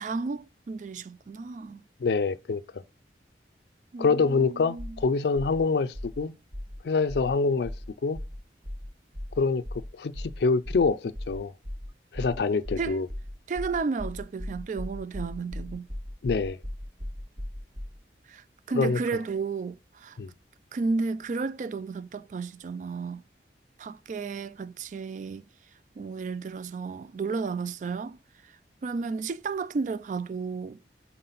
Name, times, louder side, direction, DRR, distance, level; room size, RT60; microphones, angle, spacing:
voice 1, 0.0-1.8 3.9-5.0 12.8-13.0 13.5-15.9 18.3-20.2 20.7-23.2 23.8-25.4 26.0-28.2 28.8-30.8, right 4 dB, 45° right, 0.3 m, -33 dB
voice 2, 2.0-2.8 4.0-6.3 6.8-7.7 8.0-8.2 9.4-9.6 9.9-11.5 12.1-13.1 16.2-16.6 18.8-19.0 20.2-20.3, left 4 dB, 65° left, 0.4 m, -25 dB
sound 1, 4.8-5.0 5.3-5.6 5.9-6.2 6.5-6.8 7.1-7.3 7.6-7.9 8.1-8.4 8.6-8.9 9.1-9.4 9.6-9.9 10.1-10.4 10.6-10.9 11.1-11.4 11.6-11.9 12.1-12.4 12.6-18.0, left 1 dB, 25° right, 1.0 m, -37 dB
5.8 x 4.2 x 4.0 m
head